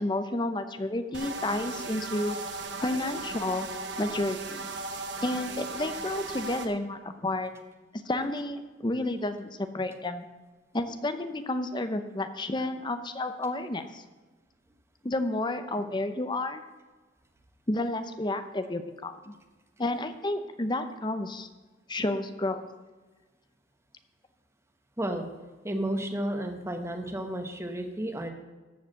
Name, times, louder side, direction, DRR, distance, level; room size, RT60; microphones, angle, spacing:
voice 1, 0.0-2.4 2.8-3.7 4.0-4.7 5.2-7.5 8.1-10.2 10.7-14.0 15.0-16.6 17.7-19.3 19.8-21.5 21.9-22.7, left 2 dB, 25° left, 9 dB, 0.7 m, -31 dB
sound 1, 1.1-6.7, right 3 dB, 65° right, 1.1 m, -37 dB
voice 2, 25.0-25.3 25.6-28.3, right 1 dB, 15° right, 5 dB, 1.0 m, -32 dB
13.5 x 4.8 x 7.5 m, 1.3 s
head